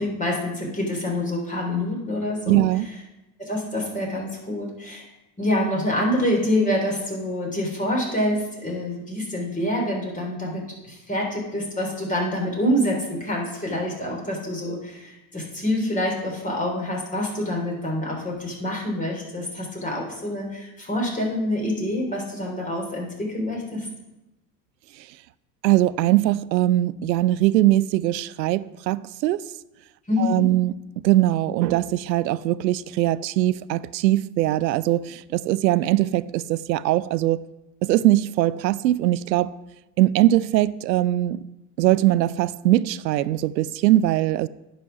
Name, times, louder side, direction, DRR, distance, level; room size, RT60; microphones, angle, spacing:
voice 1, 0.0-2.6 3.4-5.1 5.4-23.9 30.1-30.5, left 1 dB, 15° left, 3.6 m, -26 dB
voice 2, 2.5-2.9 25.6-29.5 30.2-30.7 31.0-37.4 37.8-39.5 40.0-41.4 41.8-44.5, right 15 dB, 85° right, 0.5 m, -21 dB
9.9 x 5.2 x 5.9 m
hypercardioid pair, 90°, 50 cm